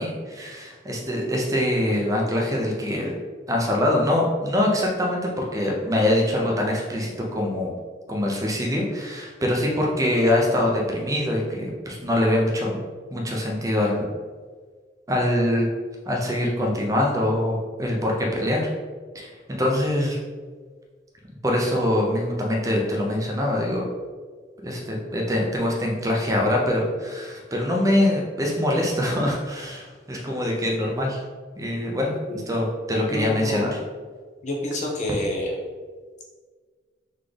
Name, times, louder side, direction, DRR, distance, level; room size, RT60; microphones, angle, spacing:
voice 1, 0.0-3.2 3.5-7.7 8.1-12.8 13.1-14.1 15.1-15.7 16.1-18.6 19.1-20.2 21.4-23.8 24.6-31.2 31.6-33.8, left 1 dB, 20° right, -1 dB, 0.7 m, -24 dB
voice 2, 33.1-33.7 34.4-35.5, left 1 dB, 40° left, -1 dB, 0.8 m, -28 dB
3.9 x 3.7 x 3.3 m, 1.5 s
head